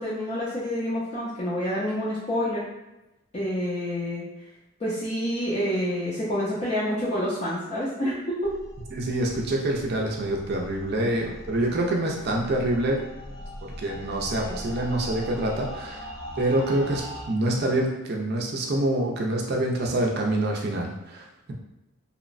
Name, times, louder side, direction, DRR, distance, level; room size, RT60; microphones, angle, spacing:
voice 1, 0.0-2.6 3.3-4.2 4.8-8.5, equal, 30° left, -9 dB, 0.5 m, -28 dB
sound 1, 8.4-17.3, equal, 90° left, 1.2 m, -40 dB
voice 2, 8.9-13.0 13.6-16.0 16.4-21.5, right 1 dB, 50° right, 0 dB, 0.4 m, -26 dB
2.9 x 2.0 x 2.5 m, 0.96 s
head